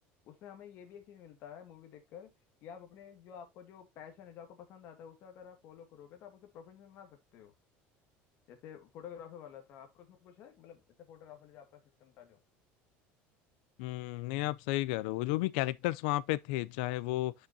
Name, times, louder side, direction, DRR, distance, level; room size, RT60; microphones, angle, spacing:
voice 1, 0.2-2.3 2.6-7.5 8.5-12.4, left 8 dB, 45° left, 2.0 m, -51 dB
voice 2, 13.8-17.3, left 17 dB, 85° left, 0.5 m, -32 dB
8.6 x 6.2 x 2.8 m
cardioid pair, 175°, 5 cm